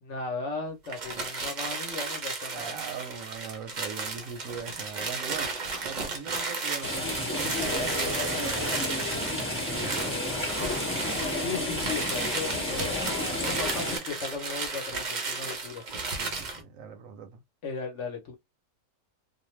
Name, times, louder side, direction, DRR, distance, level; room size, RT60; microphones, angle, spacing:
voice 1, 0.0-2.8 11.4-13.0 13.5-15.8 17.6-18.4, left 4 dB, 55° left, 1.0 m, -36 dB
sound 1, 0.8-16.6, right 3 dB, 45° right, 0.6 m, -34 dB
voice 2, 2.5-5.5 5.8-10.6 16.1-17.4, right 7 dB, 70° right, 0.9 m, -41 dB
sound 2, 6.8-14.0, left 1 dB, 10° left, 1.2 m, -31 dB
2.5 x 2.2 x 3.1 m
omnidirectional pair, 1.5 m